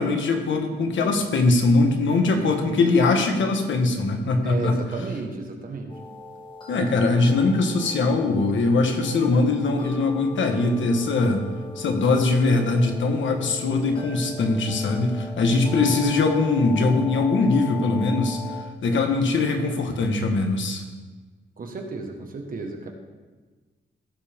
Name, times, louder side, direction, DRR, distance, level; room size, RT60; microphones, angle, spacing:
voice 1, 0.0-4.8 6.7-11.4 11.8-18.4 18.8-20.8, left 3 dB, 75° left, 4 dB, 1.4 m, -21 dB
voice 2, 2.1-2.5 4.4-5.9 15.7-15.9 21.6-22.9, right 3 dB, 45° right, 3 dB, 1.5 m, -33 dB
sound 1, 5.9-18.6, left 3 dB, 25° left, 1.7 m, -39 dB
17.0 x 7.2 x 3.6 m, 1.4 s
wide cardioid pair, 165°, 20 cm